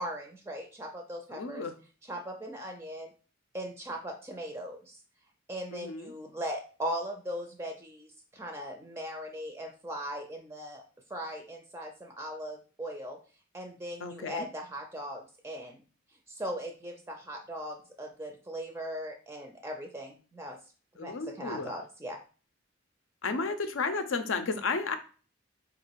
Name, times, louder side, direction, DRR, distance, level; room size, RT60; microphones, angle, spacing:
voice 1, 0.0-1.7 2.0-3.1 3.5-5.0 5.5-10.8 11.1-13.2 13.5-15.8 16.3-20.6 20.9-22.2, equal, 15° right, 3 dB, 0.4 m, -39 dB
voice 2, 1.3-1.7 5.7-6.1 14.0-14.5 21.0-21.7 23.2-25.0, left 4 dB, 80° left, 9 dB, 0.6 m, -33 dB
3.8 x 2.4 x 4.6 m, 0.38 s
head